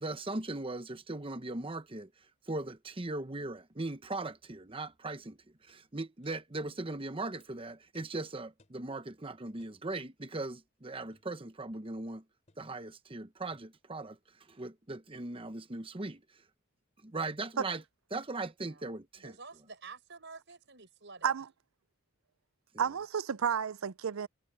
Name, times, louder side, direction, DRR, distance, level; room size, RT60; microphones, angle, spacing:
voice 1, 0.0-2.1 2.5-5.4 5.6-12.2 12.6-14.2 14.5-16.2 17.0-17.8 18.1-19.3, right 2 dB, 25° right, 1.0 m, -39 dB
sound 1, 5.3-5.4 5.7-5.8 6.2-6.4 6.8-6.9 7.4-7.5 7.9-8.2 8.6-8.8 9.6-9.8 11.1-11.4 12.5-12.7 13.5-13.8, left 2 dB, 35° left, 3.7 m, -68 dB
voice 2, 18.6-21.3, right 4 dB, 55° right, 6.1 m, -50 dB
voice 3, 22.8-24.3, right 7 dB, 85° right, 0.6 m, -31 dB
head